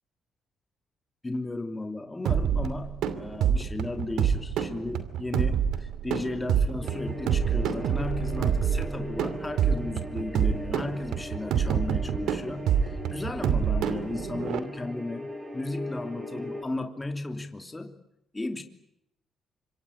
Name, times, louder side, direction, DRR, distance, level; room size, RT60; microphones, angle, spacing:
voice 1, 1.2-17.9 18.3-18.6, left 2 dB, 15° left, 6 dB, 3.0 m, -35 dB
sound 1, 2.3-14.6, right 8 dB, 85° right, 2.6 m, -27 dB
sound 2, 6.8-16.6, equal, 15° right, 7.7 m, -40 dB
26.5 x 25.0 x 8.7 m, 0.79 s
cardioid pair, 90°, 0 cm